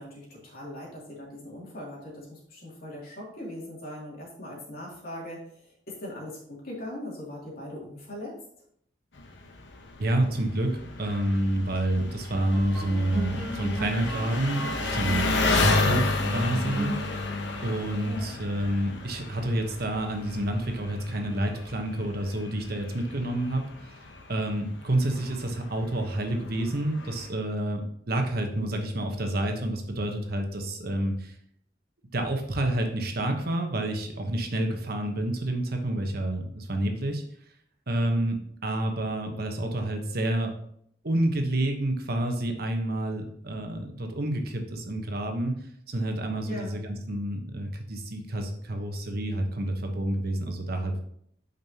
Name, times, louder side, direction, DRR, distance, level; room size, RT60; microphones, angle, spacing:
voice 1, 0.0-5.4 5.9-8.4 18.0-18.3 46.4-46.7, left 1 dB, 55° left, -3 dB, 2.7 m, -40 dB
Engine, 9.2-27.3, left 3 dB, 75° left, 1.0 m, -32 dB
voice 2, 10.0-17.0 17.6-24.0 24.3-31.3 32.1-37.2 37.9-40.5 41.0-45.6 45.9-51.0, right 1 dB, 60° right, 4 dB, 1.1 m, -29 dB
sound 1, 11.5-21.1, right 1 dB, 10° right, 2.2 m, -39 dB
8.7 x 5.4 x 2.9 m, 0.68 s
head